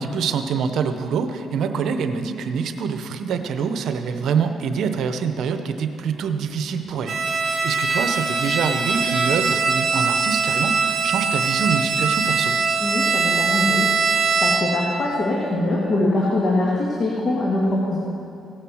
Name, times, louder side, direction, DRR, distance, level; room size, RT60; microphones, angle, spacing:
voice 1, 0.0-12.6, right 6 dB, 75° right, 8 dB, 0.8 m, -25 dB
Bowed string instrument, 7.1-14.9, right 4 dB, 55° right, 2.3 m, -22 dB
voice 2, 12.8-18.0, left 2 dB, 45° left, -4 dB, 1.9 m, -23 dB
17.0 x 6.6 x 6.3 m, 2.7 s
cardioid pair, 90°, 0 cm